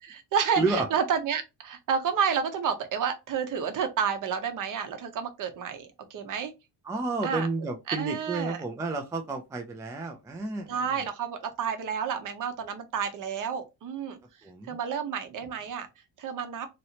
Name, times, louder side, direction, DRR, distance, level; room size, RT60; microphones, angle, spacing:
voice 1, 0.0-6.5 7.2-7.5 7.9-8.6 10.7-14.2 14.7-15.9 16.2-16.7, right 7 dB, 50° right, 0.8 m, -30 dB
voice 2, 0.6-0.9 6.9-10.8 14.4-14.8, right 3 dB, 10° right, 0.3 m, -31 dB
3.0 x 2.9 x 2.7 m
cardioid pair, 150°, 41 cm